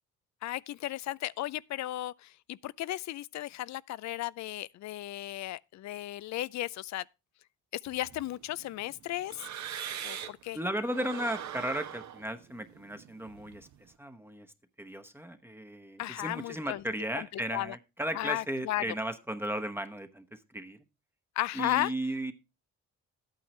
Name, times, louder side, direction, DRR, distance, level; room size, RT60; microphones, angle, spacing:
voice 1, 0.4-7.0 7.8-9.5 10.0-10.6 16.0-16.8 17.1-17.8 18.1-18.9 21.4-21.9, left 15 dB, 65° left, 0.5 m, -35 dB
sound 1, 7.9-10.5 10.8-13.9, right 9 dB, 65° right, 1.2 m, -42 dB
voice 2, 10.5-13.7 14.0-14.5 14.8-20.8 21.5-22.3, right 1 dB, 5° right, 1.0 m, -35 dB
12.0 x 8.9 x 3.2 m
cardioid pair, 90°, 30 cm